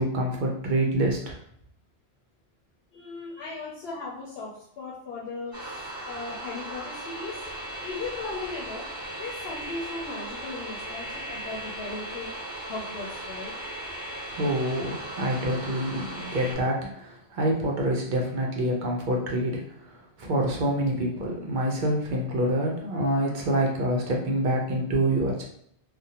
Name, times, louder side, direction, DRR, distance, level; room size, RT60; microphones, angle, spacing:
voice 1, 0.0-1.4 14.3-19.6 20.2-25.4, right 1 dB, 55° right, -1 dB, 0.7 m, -26 dB
voice 2, 2.9-7.5 7.8-12.3 12.7-13.5, left 3 dB, 70° left, -4 dB, 0.8 m, -37 dB
sound 1, 5.5-16.6, right 1 dB, 20° right, 0.9 m, -37 dB
2.5 x 2.1 x 2.8 m, 0.68 s
omnidirectional pair, 1.1 m